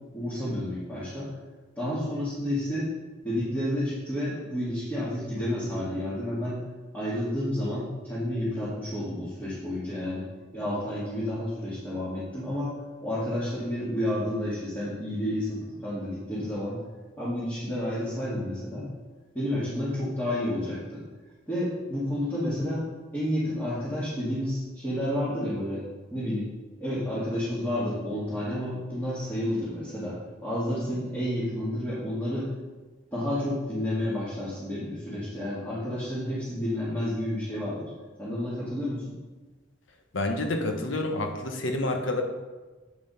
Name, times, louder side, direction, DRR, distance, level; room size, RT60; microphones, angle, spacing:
voice 1, 0.1-1.3 1.8-2.9 3.2-6.6 6.9-10.3 10.5-12.8 13.0-16.8 17.2-18.9 19.3-21.0 21.5-22.9 23.1-25.9 26.1-26.5 26.8-32.5 33.1-37.9 38.2-39.1, left 1 dB, 10° left, -12 dB, 2.4 m, -30 dB
voice 2, 40.1-42.2, left 2 dB, 80° left, 4 dB, 1.0 m, -28 dB
8.4 x 5.5 x 5.7 m, 1.2 s
head